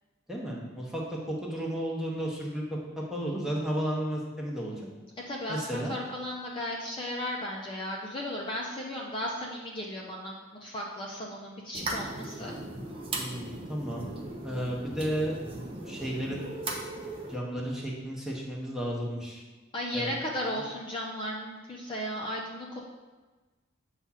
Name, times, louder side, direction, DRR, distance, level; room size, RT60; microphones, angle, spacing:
voice 1, 0.3-1.0 1.3-4.8 5.5-5.9 13.2-14.1 14.4-15.4 15.9-16.4 17.3-19.4 19.9-20.1, right 1 dB, 5° right, -4 dB, 0.9 m, -33 dB
voice 2, 5.3-12.5 19.7-22.8, left 1 dB, 25° left, -3 dB, 0.5 m, -35 dB
sound 1, 11.7-17.4, right 2 dB, 30° right, 0.6 m, -38 dB
7.1 x 2.4 x 5.6 m, 1.3 s
head